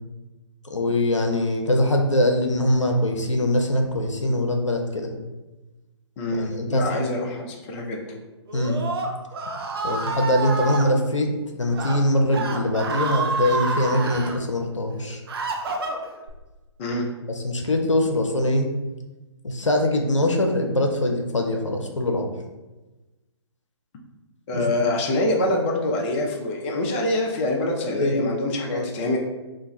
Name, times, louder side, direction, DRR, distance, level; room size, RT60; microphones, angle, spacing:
voice 1, 0.6-5.1 6.3-7.1 8.5-8.8 9.8-11.3 11.5-15.2 17.3-18.7 19.4-22.3 24.5-24.7 27.9-28.2 28.7-28.9, left 1 dB, 90° left, 3 dB, 0.5 m, -23 dB
voice 2, 6.2-8.0 16.8-17.1 24.5-29.2, left 2 dB, 25° left, -1 dB, 0.4 m, -25 dB
Screaming, 8.5-10.8 11.6-12.0 12.3-14.3 14.9-16.3, right 3 dB, 55° right, 0.5 m, -28 dB
2.5 x 2.3 x 3.9 m, 1.1 s
figure-of-eight pair, 135°, 15 cm